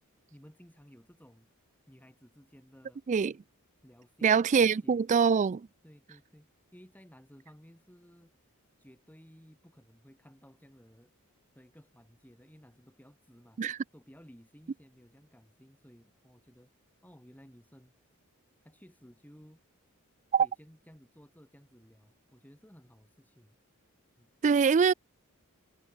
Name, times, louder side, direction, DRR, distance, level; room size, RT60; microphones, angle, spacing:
voice 1, 0.3-3.0 3.8-5.0 5.8-8.5 8.8-11.1 11.5-16.7 17.0-18.0 18.6-19.6 20.4-23.6 24.2-24.3, equal, 10° left, 5.5 m, -57 dB
voice 2, 4.2-5.7 13.6-13.8 20.3-20.5 24.4-24.9, right 6 dB, 35° right, 0.3 m, -24 dB
head